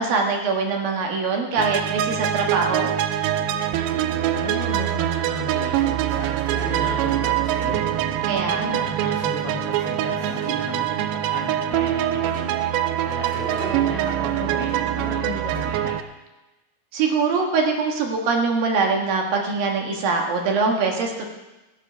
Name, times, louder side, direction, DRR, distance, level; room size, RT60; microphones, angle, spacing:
voice 1, 0.0-2.9 8.3-8.8 16.9-21.3, right 4 dB, 65° right, 1 dB, 2.9 m, -23 dB
sound 1, 1.6-16.0, right 12 dB, 85° right, 2.9 m, -24 dB
sound 2, 3.2-15.9, right 4 dB, 20° right, 1.5 m, -38 dB
voice 2, 4.3-7.8 8.5-12.6 13.0-14.7 15.0-15.9, left 3 dB, 85° left, -1 dB, 1.3 m, -35 dB
17.0 x 8.2 x 6.2 m, 1.0 s
omnidirectional pair, 5.1 m